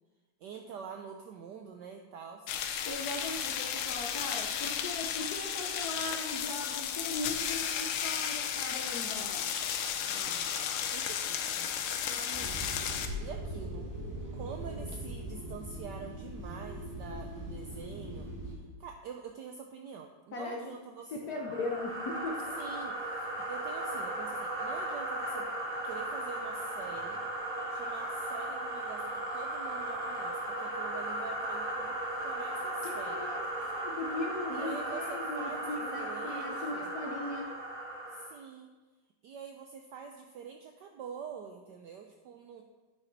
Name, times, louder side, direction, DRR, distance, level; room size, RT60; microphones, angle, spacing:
voice 1, 0.4-2.5 4.2-4.3 10.0-13.9 14.3-21.3 22.6-25.5 25.8-27.2 27.7-33.3 34.5-36.9 38.1-38.7 39.2-42.6, right 6 dB, 80° right, 3 dB, 0.9 m, -46 dB
sound 1, 2.5-13.1, left 8 dB, 85° left, 1.5 m, -34 dB
voice 2, 2.8-9.5 20.3-20.6 21.1-22.6 32.8-37.5, left 2 dB, 60° left, 1 dB, 1.0 m, -39 dB
sound 2, 12.3-18.5, right 1 dB, 10° right, 1.6 m, -40 dB
sound 3, 21.3-38.3, right 1 dB, 40° right, 1.8 m, -36 dB
9.9 x 5.8 x 4.0 m, 1.2 s
omnidirectional pair, 2.4 m